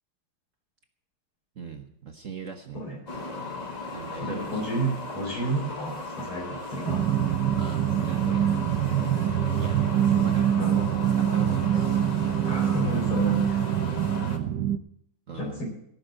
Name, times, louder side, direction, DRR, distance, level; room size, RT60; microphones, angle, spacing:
voice 1, 1.5-2.8 3.9-4.7 7.5-12.4 15.3-15.6, right 6 dB, 45° right, 4 dB, 1.2 m, -41 dB
sound 1, 3.1-14.4, left 2 dB, 20° left, 1.4 m, -37 dB
voice 2, 4.2-7.1 10.6-10.8 12.5-13.6 15.3-15.7, right 1 dB, 85° left, -1 dB, 5.2 m, -31 dB
sound 2, 6.9-14.8, right 10 dB, 70° right, 1.1 m, -24 dB
16.0 x 6.1 x 8.9 m, 0.73 s
omnidirectional pair, 2.3 m